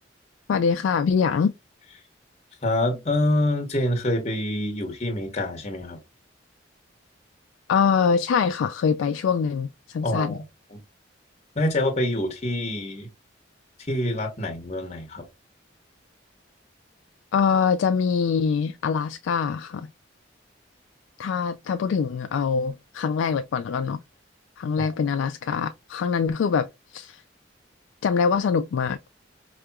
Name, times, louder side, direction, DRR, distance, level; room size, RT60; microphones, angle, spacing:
voice 1, 0.5-1.5 7.7-10.4 17.3-19.9 21.2-24.0 24.6-27.2 28.0-29.0, left 6 dB, 85° left, 0.3 m, -24 dB
voice 2, 2.6-6.0 10.0-10.4 10.7-10.8 11.5-13.1 13.9-15.2 24.8-24.9, left 1 dB, 35° left, 1.0 m, -26 dB
4.8 x 2.8 x 2.2 m
head